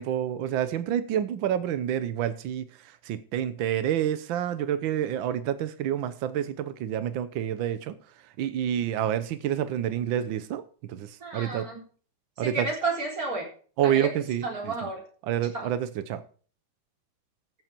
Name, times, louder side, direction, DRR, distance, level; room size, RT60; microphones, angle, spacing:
voice 1, 0.0-2.6 3.0-7.9 8.4-10.6 10.9-11.7 12.4-12.7 13.8-14.4 15.3-16.2, right 10 dB, 80° right, 1.5 m, -28 dB
voice 2, 11.2-11.8 12.4-13.5 13.8-14.1 14.4-15.0 15.5-15.7, right 3 dB, 45° right, 4.3 m, -31 dB
14.0 x 7.9 x 4.4 m
omnidirectional pair, 2.1 m